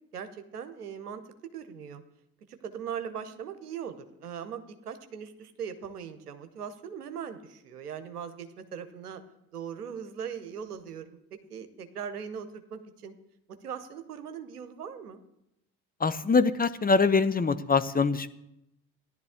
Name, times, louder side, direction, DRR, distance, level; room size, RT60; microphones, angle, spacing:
voice 1, 0.1-2.0 2.6-9.2 9.5-13.1 13.6-15.2, right 7 dB, 90° right, 9 dB, 0.9 m, -40 dB
voice 2, 16.0-18.3, left 4 dB, 20° left, 12 dB, 0.8 m, -24 dB
15.5 x 11.0 x 3.6 m, 0.83 s
figure-of-eight pair, 50°, 45 cm